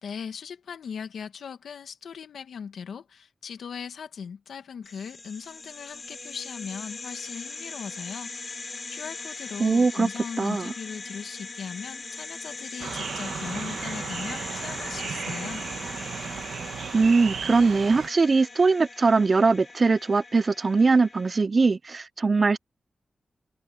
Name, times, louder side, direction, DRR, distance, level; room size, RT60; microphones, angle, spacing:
voice 1, 0.0-15.6, left 6 dB, 85° left, 2.0 m, -39 dB
sound 1, 4.8-21.4, left 3 dB, 50° left, 4.1 m, -40 dB
voice 2, 9.6-10.1 10.4-10.7 16.9-22.6, right 4 dB, 50° right, 0.4 m, -21 dB
sound 2, 12.8-18.1, right 7 dB, 85° right, 1.1 m, -35 dB
cardioid pair, 45°, 0 cm